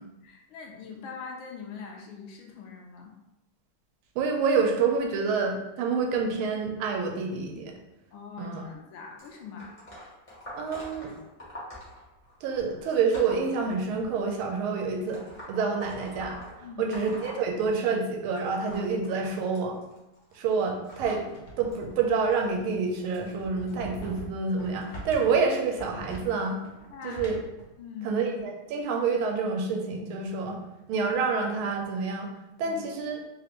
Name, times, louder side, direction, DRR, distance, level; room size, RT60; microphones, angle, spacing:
voice 1, 0.2-3.1 8.1-9.8 16.6-16.9 26.9-27.2 27.8-28.2 32.6-32.8, left 6 dB, 80° left, 1 dB, 1.4 m, -42 dB
voice 2, 4.2-7.7 8.4-8.6 10.6-11.1 12.4-15.2 15.5-16.4 16.8-19.8 20.3-21.3 21.6-26.6 27.0-27.4 28.0-30.6 30.9-32.3 32.6-33.2, right 5 dB, 80° right, 2 dB, 1.4 m, -27 dB
sound 1, 9.2-14.3 15.1-18.1 18.4-23.7 24.5-24.8 25.8-25.9 26.8-26.9 27.6-27.7, equal, 40° left, 0.5 m, -46 dB
sound 2, 20.9-27.7, equal, 60° left, 1.1 m, -43 dB
3.7 x 2.5 x 2.9 m, 0.95 s
omnidirectional pair, 2.4 m